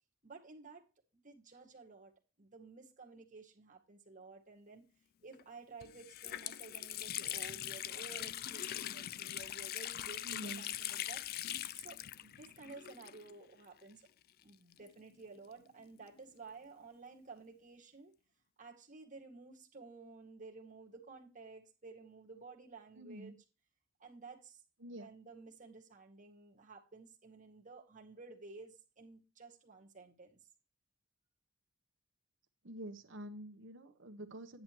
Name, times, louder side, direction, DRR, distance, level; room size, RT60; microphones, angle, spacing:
voice 1, 0.2-0.8 1.2-2.1 2.4-4.9 5.2-11.2 11.7-14.0 14.4-18.1 18.6-23.4 24.0-24.6 24.9-30.4, right 4 dB, 40° right, 2.1 m, -53 dB
Water tap faucet, 5.3-5.4 5.8-13.5 13.8-13.9 14.7-16.3, left 12 dB, 50° left, 0.3 m, -42 dB
voice 2, 10.2-10.7 22.9-23.4 24.8-25.1 32.6-34.6, right 1 dB, 65° right, 1.3 m, -47 dB
10.5 x 7.8 x 3.1 m
head